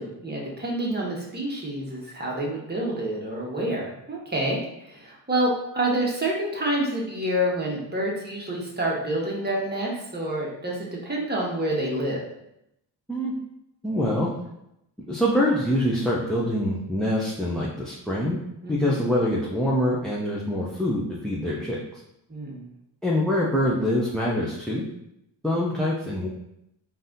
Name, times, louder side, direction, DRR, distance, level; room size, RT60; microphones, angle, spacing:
voice 1, 0.0-12.2 18.6-19.0 22.3-22.7, right 1 dB, 25° right, -3 dB, 1.3 m, -28 dB
voice 2, 13.8-14.3 15.1-18.4 18.7-22.0 23.0-24.8 25.4-26.3, left 1 dB, ahead, -4 dB, 0.6 m, -25 dB
4.0 x 2.6 x 3.7 m, 0.82 s
cardioid pair, 75°, 42 cm